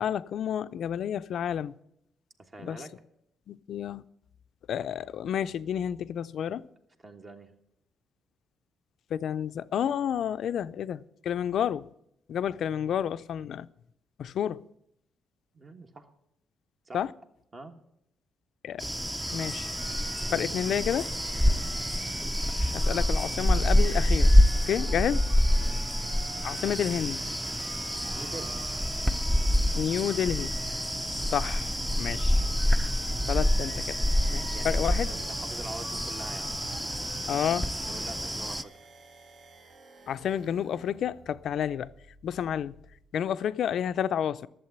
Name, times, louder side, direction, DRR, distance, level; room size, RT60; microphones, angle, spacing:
voice 1, 0.0-1.7 2.6-2.8 3.5-4.0 4.7-6.7 9.1-11.9 12.3-13.7 14.2-14.7 16.9-17.1 18.6-18.8 19.3-19.7 20.2-21.1 22.6-24.3 24.7-25.3 26.4-27.2 29.7-30.6 31.1-31.7 32.0-32.4 33.3-34.0 34.3-35.1 37.3-37.7 40.1-41.9 42.2-42.8 43.1-44.5, left 9 dB, 70° left, 0.4 m, -30 dB
voice 2, 2.4-2.9 7.0-7.5 15.5-16.1 16.8-17.0 17.5-17.7 21.3-21.7 25.6-25.9 28.1-28.6 34.0-36.5 37.9-38.8, right 2 dB, 35° right, 1.3 m, -45 dB
sound 1, 18.8-38.6, equal, 5° right, 0.5 m, -26 dB
sound 2, 19.2-38.1, right 2 dB, 90° right, 3.3 m, -47 dB
sound 3, 37.1-43.0, right 2 dB, 60° right, 1.3 m, -54 dB
11.5 x 7.4 x 7.9 m
cardioid pair, 90°, 0 cm